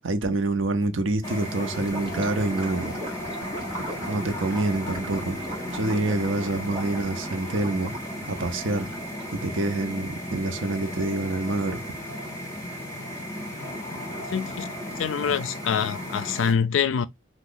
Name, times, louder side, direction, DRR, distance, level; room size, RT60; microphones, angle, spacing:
voice 1, 0.0-3.0 4.1-5.4 5.7-7.9 8.3-8.9 9.3-11.8, right 2 dB, 80° right, 0.6 m, -27 dB
sound 1, 1.2-16.5, equal, 20° left, 1.5 m, -35 dB
Gurgling / Liquid, 1.7-9.4, right 1 dB, 30° right, 1.4 m, -39 dB
voice 2, 14.3-14.7 15.0-17.1, left 7 dB, 80° left, 0.4 m, -25 dB
2.9 x 2.3 x 3.8 m
head